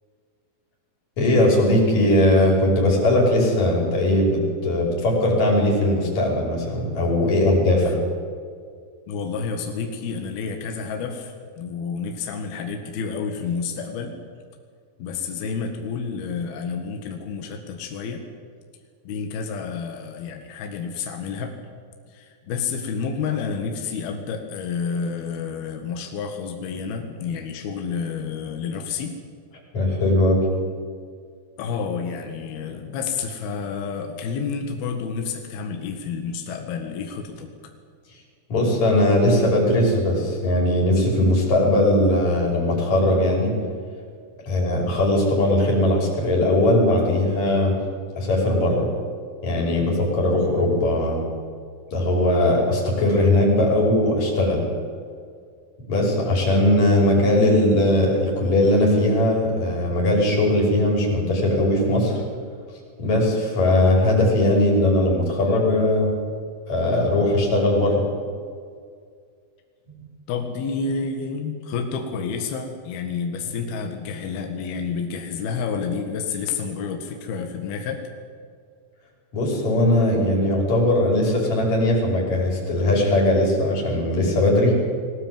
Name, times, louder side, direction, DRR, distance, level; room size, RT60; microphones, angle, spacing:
voice 1, 1.2-8.0 29.7-30.5 38.5-43.5 44.5-47.7 48.2-48.9 49.4-51.2 51.9-54.6 55.9-62.2 63.0-66.1 66.7-68.1 79.3-84.7, left 1 dB, 45° left, -2 dB, 6.4 m, -19 dB
voice 2, 9.1-14.1 15.0-18.2 19.1-21.5 22.1-29.2 31.6-37.5 70.3-78.0, left 5 dB, 75° left, 4 dB, 3.5 m, -29 dB
21.0 x 18.0 x 9.3 m, 2.1 s
omnidirectional pair, 4.6 m